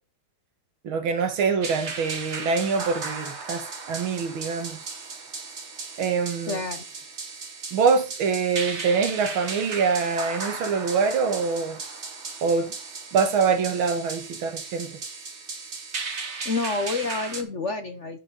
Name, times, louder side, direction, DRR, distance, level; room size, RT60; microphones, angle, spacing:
voice 1, 0.8-4.9 6.0-6.6 7.7-11.8 12.4-12.7 13.1-15.0, right 5 dB, 80° right, 2.2 m, -24 dB
sound 1, 1.6-17.4, right 4 dB, 35° right, 1.5 m, -36 dB
voice 2, 6.5-6.8 16.4-18.2, left 3 dB, 50° left, 0.9 m, -28 dB
10.5 x 6.0 x 4.0 m
omnidirectional pair, 2.2 m